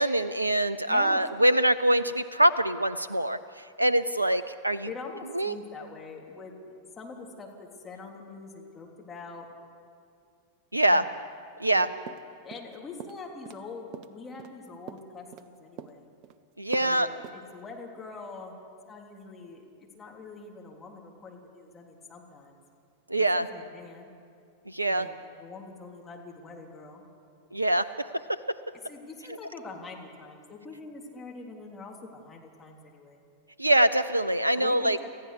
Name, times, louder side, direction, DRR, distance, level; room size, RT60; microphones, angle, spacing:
voice 1, 0.0-3.4 3.8-4.9 5.3-5.5 10.7-11.0 11.6-11.9 16.6-17.1 23.1-23.5 24.7-25.1 27.5-27.9 33.6-35.0, right 1 dB, 85° right, 15 dB, 0.5 m, -24 dB
voice 2, 0.9-1.2 4.8-6.5 7.0-9.5 10.8-11.2 11.7-11.8 12.4-16.1 16.7-18.5 18.9-22.6 23.2-24.1 24.9-27.0 28.8-33.2 34.5-35.1, left 4 dB, 20° left, 0 dB, 3.4 m, -44 dB
sound 1, 12.1-12.7 13.0-13.6 13.9-15.5 15.8-16.4 16.7-17.0 17.2-17.4, right 9 dB, 40° right, 0.9 m, -43 dB
29.0 x 15.0 x 6.8 m, 2.4 s
figure-of-eight pair, 90°, 0 cm